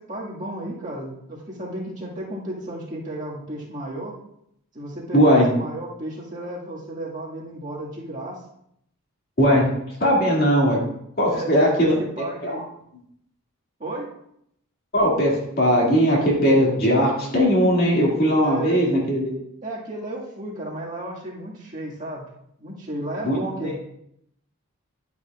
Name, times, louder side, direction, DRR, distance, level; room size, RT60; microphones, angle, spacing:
voice 1, 0.0-4.1 4.7-8.4 11.3-12.7 13.8-14.1 18.4-18.8 19.6-22.3 22.6-23.8, right 1 dB, 35° right, -5 dB, 1.9 m, -33 dB
voice 2, 5.1-5.5 9.4-9.7 10.0-10.8 11.2-12.0 12.4-12.6 14.9-19.3 23.2-23.7, equal, 40° left, -3 dB, 2.4 m, -19 dB
10.5 x 9.3 x 2.4 m, 0.75 s
head